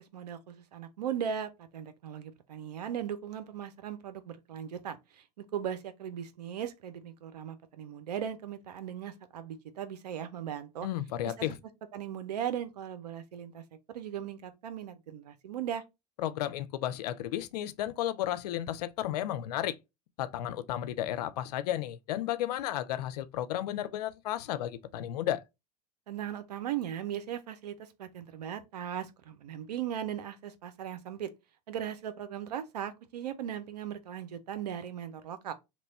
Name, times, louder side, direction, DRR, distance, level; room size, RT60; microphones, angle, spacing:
voice 1, 0.0-10.9 11.2-11.6 11.9-15.8 26.1-31.3 31.7-35.5, right 9 dB, 90° right, 0.6 m, -38 dB
voice 2, 10.8-11.6 16.2-19.8 20.2-25.4, left 12 dB, 80° left, 0.5 m, -33 dB
3.0 x 2.2 x 4.0 m
hypercardioid pair, 90°, 20 cm